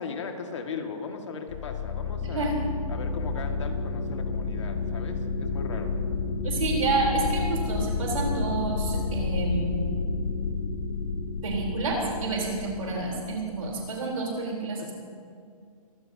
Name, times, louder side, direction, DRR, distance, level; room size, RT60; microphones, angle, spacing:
voice 1, 0.0-2.5 2.9-5.9 12.6-13.0 14.8-14.9, left 5 dB, 50° left, 3 dB, 2.0 m, -38 dB
sound 1, 1.5-13.7, left 4 dB, 25° left, 1.3 m, -30 dB
voice 2, 6.4-9.9 11.4-14.9, right 3 dB, 60° right, -2 dB, 3.9 m, -29 dB
25.5 x 15.5 x 2.8 m, 2.3 s
hypercardioid pair, 170°, 19 cm